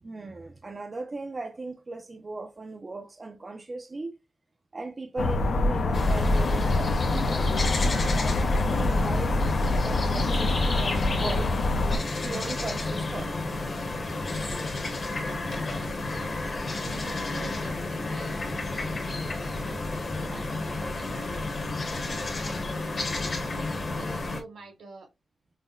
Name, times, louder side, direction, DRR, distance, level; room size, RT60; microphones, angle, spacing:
voice 1, 0.0-4.2 4.7-11.6 12.2-13.3 16.8-16.9 19.3-19.4, right 3 dB, 25° right, 0.4 m, -38 dB
sound 1, 5.2-12.0, left 2 dB, 70° left, 0.5 m, -25 dB
sound 2, 5.9-24.4, left 2 dB, 35° left, 0.8 m, -31 dB
voice 2, 15.1-16.5 16.8-18.9 19.6-23.4 24.0-25.1, right 4 dB, 80° right, 1.5 m, -47 dB
5.5 x 2.0 x 2.3 m
wide cardioid pair, 180°, 0 cm